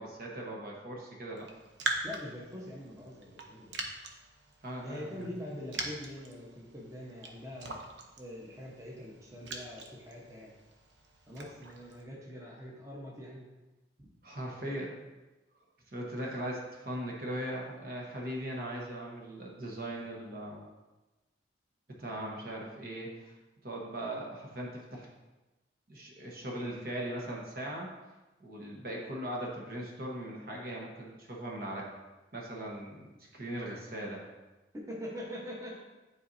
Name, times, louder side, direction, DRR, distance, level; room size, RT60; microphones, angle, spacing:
voice 1, 0.0-1.5 4.6-5.3 14.2-14.9 15.5-20.7 22.0-23.4 23.6-25.1 25.9-27.9 28.4-31.9 32.3-33.1 33.3-34.2, right 1 dB, 50° right, -2 dB, 1.0 m, -39 dB
Raindrop, 1.4-12.0, right 3 dB, 75° right, 0.7 m, -42 dB
voice 2, 2.0-3.8 4.8-7.8 8.2-10.5 11.3-13.5 14.0-14.1 34.7-35.8, left 1 dB, 15° right, -4 dB, 1.0 m, -44 dB
10.0 x 4.2 x 2.6 m, 1.1 s
head